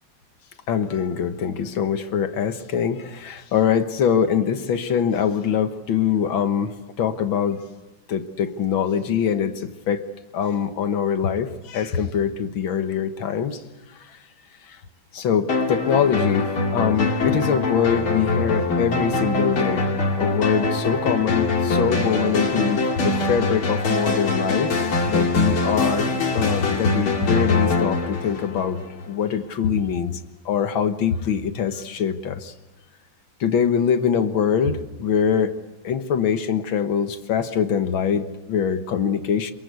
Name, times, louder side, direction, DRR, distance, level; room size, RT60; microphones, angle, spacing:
voice 1, 0.7-7.6 8.1-10.0 10.3-13.6 15.1-19.9 20.2-24.8 25.1-28.8 29.1-30.2 30.5-32.5 33.4-35.6 35.8-39.5, left 7 dB, 70° left, 8 dB, 2.1 m, -23 dB
sound 1, 15.5-29.0, left 3 dB, 85° left, 3.4 m, -23 dB
27.5 x 22.5 x 8.3 m, 1.1 s
omnidirectional pair, 2.2 m